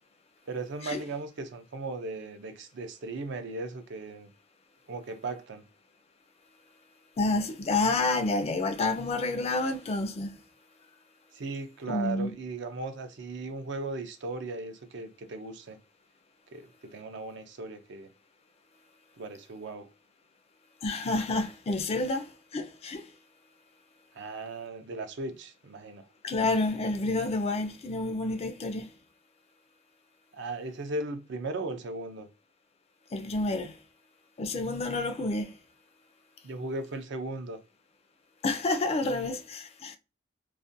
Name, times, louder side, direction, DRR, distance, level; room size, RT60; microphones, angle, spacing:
voice 1, 0.5-4.3 4.9-5.6 11.3-15.8 16.5-18.1 19.2-19.9 24.1-26.1 30.3-32.3 36.4-37.6, right 3 dB, 65° right, 0.5 m, -37 dB
voice 2, 7.2-10.4 11.9-12.3 20.8-23.1 26.2-28.9 33.1-33.8 34.4-35.5 38.4-40.0, left 2 dB, 30° left, 0.4 m, -29 dB
2.4 x 2.1 x 2.6 m
head